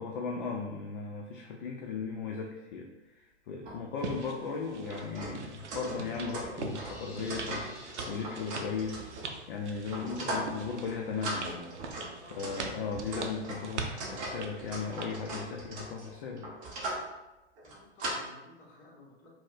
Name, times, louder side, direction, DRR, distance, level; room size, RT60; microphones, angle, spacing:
voice 1, 0.0-9.0 9.5-11.8 12.4-16.5, left 5 dB, 50° left, 1 dB, 0.4 m, -37 dB
sound 1, 3.6-3.8 4.0-4.1 4.8-9.4 9.9-10.6 10.8-11.0 11.2-17.1 17.6-18.1, right 1 dB, 25° right, 0.6 m, -39 dB
sound 2, 4.0-15.1, right 4 dB, 80° right, 0.5 m, -43 dB
sound 3, 6.6-9.2, equal, 5° right, 1.4 m, -52 dB
voice 2, 12.2-12.6 17.6-19.3, left 1 dB, 25° left, -3 dB, 0.9 m, -55 dB
4.1 x 2.1 x 2.4 m, 1.0 s
hypercardioid pair, 115°, 34 cm